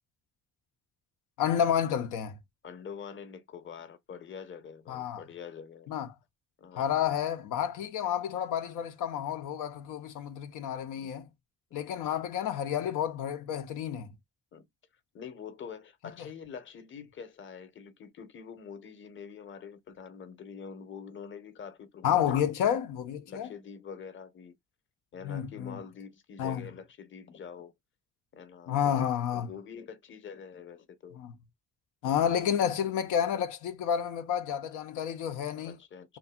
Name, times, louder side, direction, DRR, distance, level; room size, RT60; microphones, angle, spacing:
voice 1, 1.4-2.4 4.9-5.2 5.9-6.1 6.8-11.3 11.7-14.1 22.0-23.5 25.2-25.8 26.4-26.7 28.7-29.5 31.2-31.3 32.0-35.8, left 9 dB, 90° left, 0.5 m, -30 dB
voice 2, 2.6-5.9 6.6-7.0 11.0-11.1 14.5-14.6 15.1-22.7 23.3-24.5 25.1-27.7 28.3-31.2 35.6-36.2, left 6 dB, 40° left, 0.8 m, -45 dB
2.7 x 2.5 x 2.3 m
cardioid pair, 90°, 30 cm